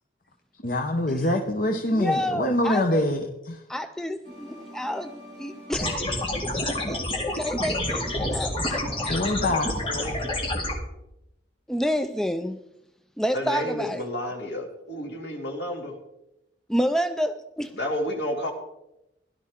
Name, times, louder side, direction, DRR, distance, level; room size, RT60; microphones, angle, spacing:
voice 1, 0.6-3.6 9.1-10.1, left 1 dB, 50° left, 4 dB, 1.0 m, -25 dB
voice 2, 1.9-3.0 3.7-6.2 6.9-9.2 11.7-12.6 13.2-14.0 16.7-17.7, equal, 5° left, 8 dB, 0.4 m, -29 dB
sound 1, 4.2-10.3, equal, 35° right, 4.2 m, -45 dB
sound 2, 5.7-10.7, left 1 dB, 30° left, 2.1 m, -28 dB
voice 3, 9.9-10.3 13.3-15.9 17.7-18.5, left 1 dB, 65° left, 1 dB, 2.7 m, -31 dB
17.0 x 11.5 x 3.7 m, 0.87 s
head